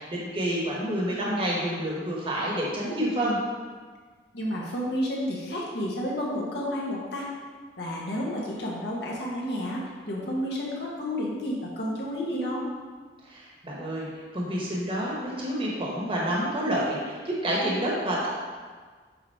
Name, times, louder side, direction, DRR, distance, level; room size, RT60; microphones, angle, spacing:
voice 1, 0.0-3.4 13.2-14.1 14.3-18.3, right 1 dB, 30° right, -4 dB, 1.2 m, -28 dB
voice 2, 4.3-7.3 7.8-12.7, equal, 65° left, -4 dB, 1.4 m, -31 dB
7.7 x 3.6 x 4.6 m, 1.5 s
head